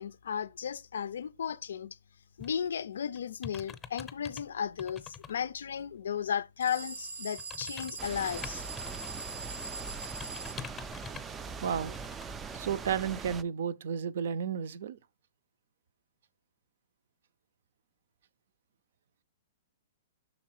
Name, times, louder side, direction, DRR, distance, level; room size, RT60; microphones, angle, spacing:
voice 1, 0.0-2.0 2.4-8.6, left 8 dB, 80° left, 0.4 m, -35 dB
sound 1, 2.4-2.7 3.2-4.4 4.8-5.3 5.8-5.9 7.3-9.2 9.5-11.3 11.9-12.3 12.5-12.6, left 7 dB, 15° left, 0.6 m, -46 dB
sound 2, 6.6-10.6, right 3 dB, 85° right, 1.0 m, -42 dB
sound 3, 8.0-13.4, right 5 dB, 15° right, 0.3 m, -41 dB
voice 2, 11.6-12.0 12.5-15.0, right 7 dB, 65° right, 0.5 m, -32 dB
6.2 x 3.9 x 4.6 m
hypercardioid pair, 150°, 0 cm